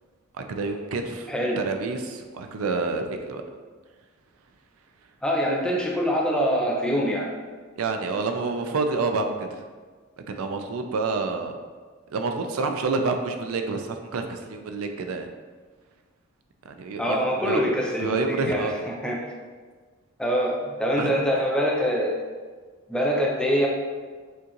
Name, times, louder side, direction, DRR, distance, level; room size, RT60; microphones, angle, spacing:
voice 1, 0.4-3.4 7.7-9.7 10.3-11.5 12.1-15.3 16.7-17.7 18.0-18.8 21.0-21.2, right 4 dB, 80° right, 6 dB, 0.4 m, -28 dB
voice 2, 1.3-1.6 5.2-7.3 17.0-19.2 20.2-22.2 22.9-23.7, equal, 5° left, -2 dB, 0.6 m, -24 dB
6.3 x 2.5 x 2.9 m, 1.5 s
head